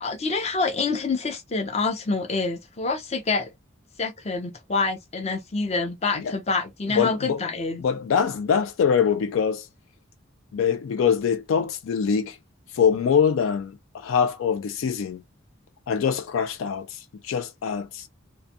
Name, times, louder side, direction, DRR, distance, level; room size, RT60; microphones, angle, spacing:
voice 1, 0.0-3.5 4.0-7.8, left 3 dB, 30° left, 0.6 m, -27 dB
voice 2, 7.0-7.4 7.8-9.7 10.5-12.4 12.7-15.2 15.9-18.1, left 7 dB, 75° left, 0.3 m, -24 dB
2.5 x 2.3 x 2.6 m
head